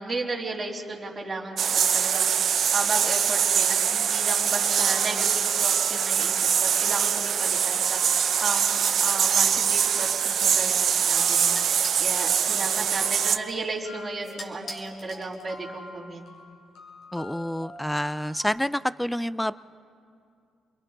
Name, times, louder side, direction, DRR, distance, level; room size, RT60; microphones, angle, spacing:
voice 1, 0.0-2.3 2.7-16.2, right 3 dB, 25° right, -4 dB, 3.5 m, -34 dB
sound 1, 1.6-13.4, right 8 dB, 60° right, 0.6 m, -23 dB
sound 2, 3.0-18.4, left 1 dB, 75° left, 5.4 m, -46 dB
sound 3, 9.4-15.8, left 1 dB, 40° left, 2.7 m, -46 dB
voice 2, 17.1-19.6, equal, 5° left, 16 dB, 0.4 m, -28 dB
29.0 x 22.0 x 4.0 m, 2.4 s
cardioid pair, 90°, 0 cm